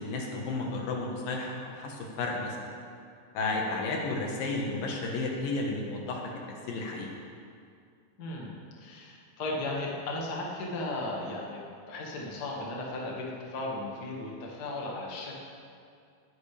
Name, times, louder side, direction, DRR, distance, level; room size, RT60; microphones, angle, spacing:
voice 1, 0.0-2.6 3.3-6.2 6.5-7.1, left 3 dB, 75° left, -1 dB, 3.1 m, -32 dB
voice 2, 8.2-15.3, left 2 dB, 35° left, -3 dB, 1.7 m, -36 dB
20.0 x 10.5 x 3.4 m, 2.3 s
omnidirectional pair, 4.1 m